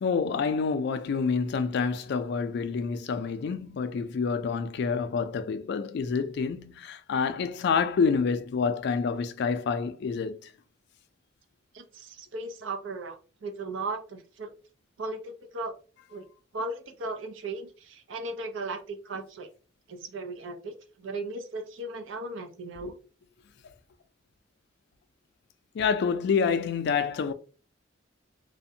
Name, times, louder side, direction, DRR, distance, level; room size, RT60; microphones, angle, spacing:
voice 1, 0.0-10.5 22.9-23.0 25.7-27.3, left 5 dB, 60° left, 0.3 m, -28 dB
voice 2, 11.7-14.5 15.0-15.7 16.1-16.2 16.5-19.5 19.9-22.9, right 2 dB, 80° right, 0.6 m, -37 dB
2.5 x 2.1 x 2.6 m
head